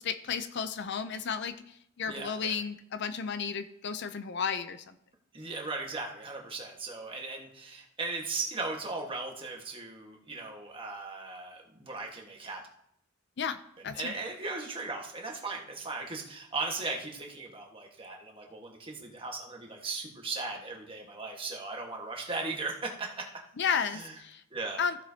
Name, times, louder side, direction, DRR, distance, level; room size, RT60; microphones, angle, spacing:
voice 1, 0.0-1.6 2.0-5.0 13.4-13.6 13.8-14.1 23.6-24.4 24.8-25.0, left 6 dB, 55° left, 11 dB, 0.5 m, -33 dB
voice 2, 2.1-2.6 5.3-12.6 13.9-23.2 23.9-24.1 24.5-24.8, right 3 dB, 25° right, 0 dB, 1.5 m, -37 dB
15.0 x 7.3 x 2.8 m, 0.74 s
head